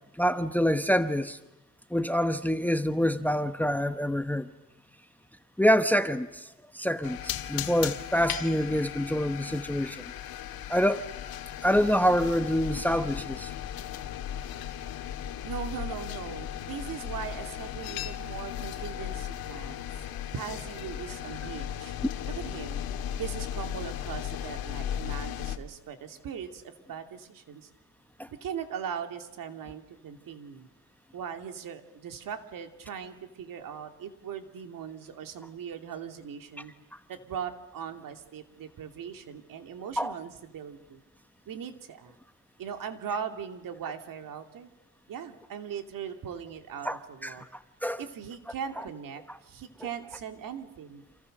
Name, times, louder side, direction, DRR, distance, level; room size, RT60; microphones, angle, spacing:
voice 1, 0.2-1.4 1.9-4.5 5.6-6.5 6.7-10.0 10.7-11.1 11.6-13.5 28.2-28.3 40.0-40.1 46.8-47.4 47.8-48.0, equal, 5° left, 11 dB, 1.0 m, -26 dB
sound 1, 7.0-25.6, left 10 dB, 80° left, 2.0 m, -36 dB
voice 2, 15.4-19.8 20.3-21.9 22.3-22.8 23.2-27.7 28.3-30.7 31.1-36.7 37.1-41.0 41.5-42.2 42.6-44.7 45.1-47.5 48.0-51.0, right 7 dB, 65° right, 7 dB, 2.8 m, -39 dB
29.0 x 27.5 x 6.7 m, 0.95 s
cardioid pair, 110°, 36 cm